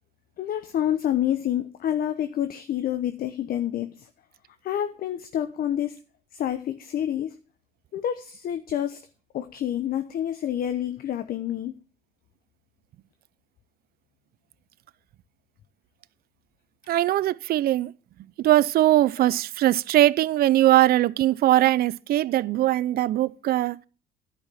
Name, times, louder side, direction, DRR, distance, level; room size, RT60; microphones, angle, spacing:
voice 1, 0.4-4.1 4.6-6.0 6.3-7.3 7.9-9.0 9.3-11.7 19.2-19.3, left 10 dB, 50° left, 0.8 m, -28 dB
voice 2, 16.9-17.9 18.4-23.8, right 14 dB, 50° right, 0.5 m, -21 dB
10.5 x 5.8 x 7.4 m
supercardioid pair, 90°, 19 cm